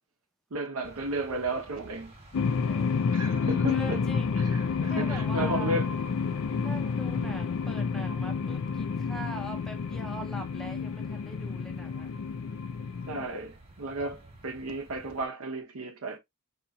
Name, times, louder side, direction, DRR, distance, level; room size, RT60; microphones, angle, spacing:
voice 1, 0.5-2.1 3.1-4.0 4.4-5.9 7.0-7.4 13.1-16.2, right 2 dB, 70° right, 0.8 m, -34 dB
sound 1, 0.8-15.3, right 2 dB, 25° right, 1.2 m, -52 dB
sound 2, 2.3-13.3, left 5 dB, 65° left, 0.4 m, -30 dB
voice 2, 2.7-3.1 3.7-4.4 4.9-5.8 6.6-12.1, right 1 dB, ahead, 0.6 m, -42 dB
4.0 x 2.9 x 2.3 m
head